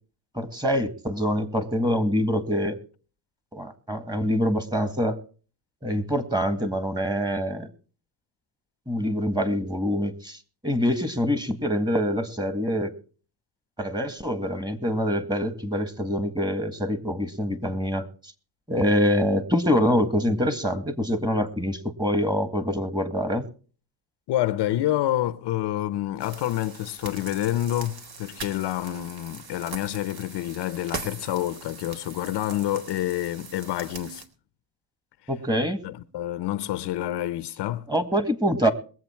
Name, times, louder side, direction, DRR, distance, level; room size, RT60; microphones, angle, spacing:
voice 1, 0.3-2.8 3.5-5.2 5.8-7.7 8.9-12.9 13.8-18.1 18.7-23.5 35.3-35.8 37.9-38.7, equal, 10° right, 1.9 m, -25 dB
voice 2, 24.3-34.2 35.8-37.9, left 14 dB, 70° left, 0.8 m, -28 dB
sound 1, 26.2-34.3, right 5 dB, 60° right, 2.3 m, -41 dB
21.5 x 8.0 x 4.5 m
cardioid pair, 105°, 42 cm